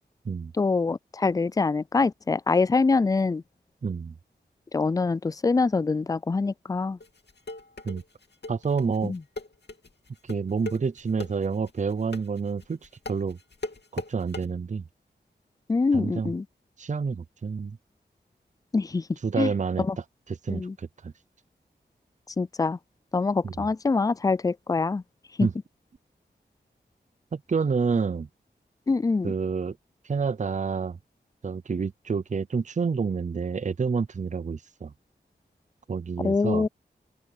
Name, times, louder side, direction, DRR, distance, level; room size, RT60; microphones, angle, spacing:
voice 1, 0.6-3.4 4.7-7.0 9.0-9.2 15.7-16.4 18.7-19.1 19.4-19.5 19.8-20.0 20.5-20.8 22.4-22.8 23.1-25.0 25.4-25.5 28.9-29.3 36.2-36.7, left 4 dB, 20° left, 0.3 m, -24 dB
voice 2, 3.8-4.2 7.8-8.0 8.5-9.1 10.2-13.4 13.9-14.8 15.9-16.3 16.8-17.8 19.2-19.9 20.3-21.1 23.4-23.7 25.4-25.5 27.3-28.3 29.2-29.8 30.0-31.0 31.4-34.9 35.9-36.7, right 5 dB, 40° right, 0.5 m, -28 dB
sound 1, 7.0-14.5, left 2 dB, 70° left, 2.7 m, -38 dB
open air
wide cardioid pair, 65°, 18 cm